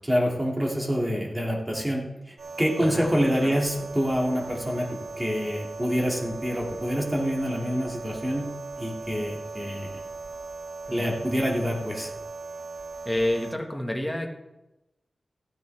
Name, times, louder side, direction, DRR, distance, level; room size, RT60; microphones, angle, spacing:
voice 1, 0.0-4.9 5.2-8.5 8.8-10.0 10.9-12.1, equal, 10° right, -1 dB, 2.4 m, -27 dB
sound 1, 2.4-13.6, right 3 dB, 70° right, 0.8 m, -38 dB
voice 2, 13.0-14.3, left 1 dB, 5° left, 2 dB, 1.6 m, -29 dB
15.0 x 9.2 x 3.5 m, 0.97 s
wide cardioid pair, 110°, 0 cm